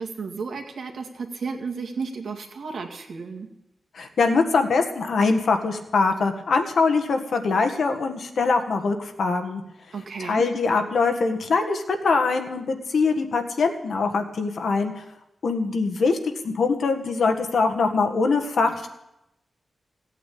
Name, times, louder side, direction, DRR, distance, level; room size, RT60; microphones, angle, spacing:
voice 1, 0.0-3.5 9.9-10.4, right 5 dB, 65° right, 4 dB, 2.1 m, -33 dB
voice 2, 3.9-9.6 10.2-15.0 15.4-18.9, left 4 dB, 60° left, 6 dB, 1.6 m, -23 dB
16.5 x 8.9 x 8.5 m, 0.87 s
wide cardioid pair, 180°, 0 cm